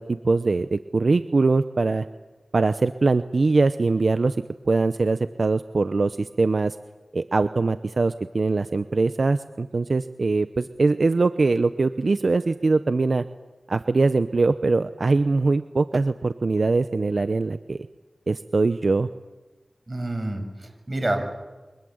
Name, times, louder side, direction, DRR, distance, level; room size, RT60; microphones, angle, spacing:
voice 1, 0.0-2.0 2.5-4.4 4.7-6.8 7.1-13.2 13.7-17.8 18.3-19.1, right 3 dB, 70° right, 11 dB, 0.8 m, -22 dB
voice 2, 19.9-21.2, right 1 dB, 35° right, 5 dB, 7.2 m, -28 dB
28.5 x 25.0 x 8.0 m, 1.2 s
cardioid pair, 45°, 0 cm